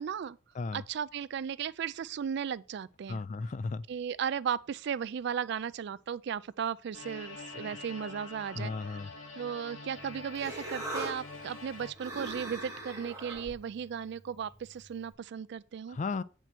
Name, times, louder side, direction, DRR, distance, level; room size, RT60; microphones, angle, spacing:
voice 1, 0.0-0.4 0.7-3.2 3.9-9.0 9.3-16.0, right 8 dB, 60° right, 0.3 m, -36 dB
voice 2, 3.1-3.8 7.6-7.7 8.6-9.1 15.9-16.2, left 4 dB, 40° left, 0.4 m, -35 dB
sound 1, 6.9-11.9, left 3 dB, 80° left, 2.2 m, -45 dB
Human voice, 9.9-15.1, right 1 dB, 15° right, 1.9 m, -43 dB
8.0 x 4.5 x 5.9 m
head